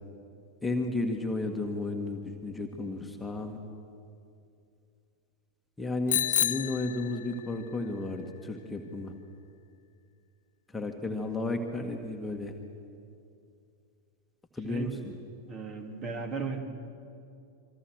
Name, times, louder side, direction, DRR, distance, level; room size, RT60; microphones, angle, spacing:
voice 1, 0.6-3.6 5.8-9.1 10.7-12.5 14.5-15.1, left 2 dB, 10° left, 2 dB, 1.9 m, -33 dB
Bicycle bell, 6.1-7.6, left 11 dB, 60° left, 0.9 m, -29 dB
voice 2, 15.5-16.6, right 4 dB, 30° right, 5 dB, 2.9 m, -35 dB
27.5 x 24.0 x 6.4 m, 2.5 s
figure-of-eight pair, 90°, 0 cm